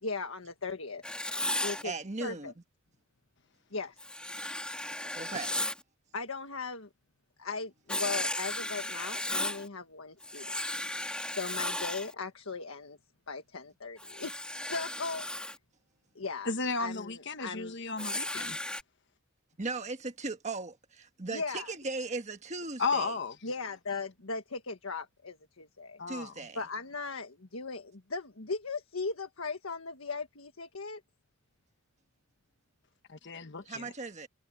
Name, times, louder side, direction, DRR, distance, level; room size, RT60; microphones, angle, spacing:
voice 1, 0.0-1.0 1.6-1.9 2.2-2.5 3.7-4.0 6.1-6.9 7.4-10.6 10.9-13.0 13.3-15.4 16.1-17.7 21.3-21.7 23.4-26.0 26.5-31.0, left 4 dB, 70° left, 1.6 m, -38 dB
Writing, 1.0-1.8 4.0-5.8 7.9-9.7 10.2-12.1 14.0-15.6 18.0-18.8, left 1 dB, 5° left, 3.8 m, -35 dB
voice 2, 1.8-2.5 5.1-5.6 19.6-23.1 26.1-26.6 33.6-34.3, right 3 dB, 35° right, 1.5 m, -37 dB
voice 3, 16.5-18.6 22.8-23.4 26.0-26.3 33.1-33.9, left 4 dB, 55° left, 1.4 m, -34 dB
head